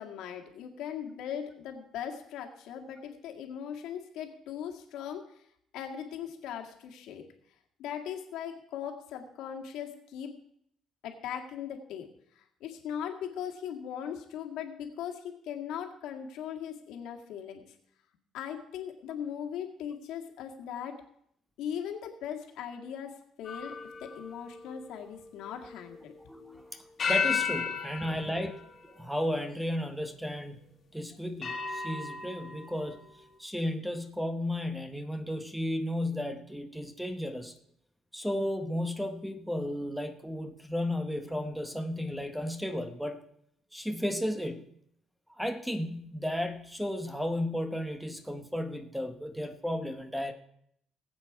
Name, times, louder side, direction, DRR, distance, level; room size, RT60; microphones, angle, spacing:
voice 1, 0.0-5.3 5.7-7.2 7.8-10.3 11.0-12.1 12.4-17.6 18.3-21.0 21.6-23.1 23.4-23.7 24.0-26.1 28.0-28.1, left 8 dB, 80° left, 3 dB, 1.9 m, -39 dB
sound 1, 23.4-26.4 27.0-29.7 30.4-30.5 31.4-33.0, left 6 dB, 35° left, 1.8 m, -35 dB
voice 2, 26.3-28.6 29.0-30.6 30.9-33.0 33.4-37.5 38.1-43.2 43.7-44.7 45.4-50.3, left 1 dB, ahead, 7 dB, 0.8 m, -34 dB
19.5 x 8.1 x 4.7 m, 0.70 s
cardioid pair, 160°, 0 cm